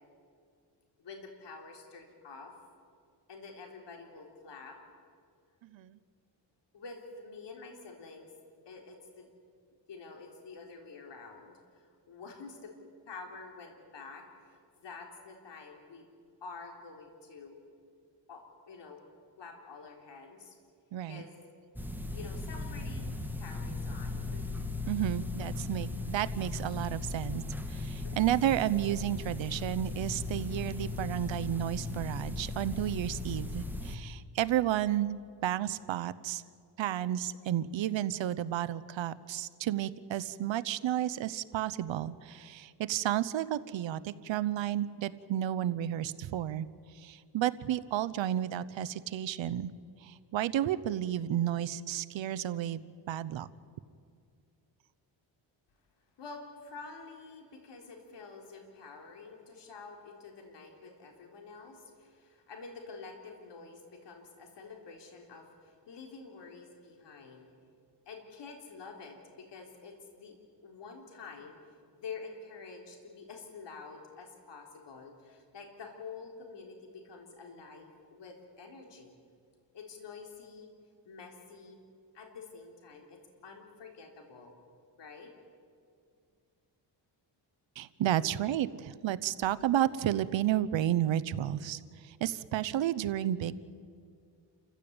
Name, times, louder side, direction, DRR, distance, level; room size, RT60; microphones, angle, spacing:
voice 1, 1.0-2.5 3.3-4.8 6.7-8.3 8.7-9.3 9.9-12.7 13.1-16.1 16.4-17.6 18.3-19.0 19.4-20.6 21.1-21.5 22.1-24.6 28.0-28.3 56.2-67.5 68.1-70.4 70.6-71.5 72.0-79.1 79.7-80.7 81.1-81.8 82.1-84.6 85.0-85.3, left 4 dB, 70° left, 2 dB, 3.8 m, -48 dB
voice 2, 5.6-6.0 20.9-21.2 24.9-36.4 36.8-46.7 47.0-49.7 50.0-53.5 87.8-93.6, right 12 dB, 85° right, 15 dB, 0.9 m, -32 dB
sound 1, 21.8-34.0, left 3 dB, 5° right, 1.8 m, -37 dB
29.0 x 15.0 x 8.8 m, 2.2 s
cardioid pair, 100°, 44 cm